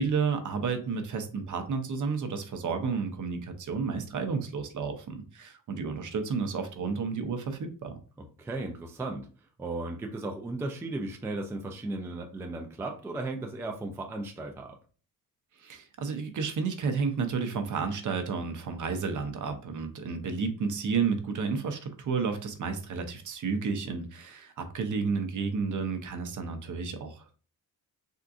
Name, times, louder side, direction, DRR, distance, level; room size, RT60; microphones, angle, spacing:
voice 1, 0.0-8.0 15.6-27.3, right 5 dB, 55° right, 6 dB, 0.6 m, -31 dB
voice 2, 8.4-9.3 9.6-14.7, right 2 dB, 10° right, 3 dB, 0.3 m, -35 dB
3.6 x 2.5 x 2.3 m, 0.38 s
wide cardioid pair, 140°, 36 cm